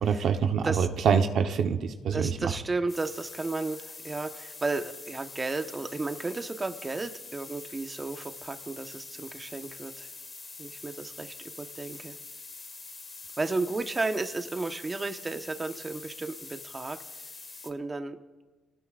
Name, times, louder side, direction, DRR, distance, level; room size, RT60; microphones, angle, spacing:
voice 1, 0.0-2.5, right 6 dB, 70° right, 5 dB, 1.1 m, -25 dB
voice 2, 2.1-10.1 10.6-12.1 13.4-17.0 17.6-18.2, right 3 dB, 25° right, 6 dB, 1.2 m, -33 dB
sound 1, 2.9-17.7, left 3 dB, 35° left, 1.5 m, -45 dB
28.5 x 18.5 x 2.5 m, 1.2 s
cardioid pair, 90°, 0 cm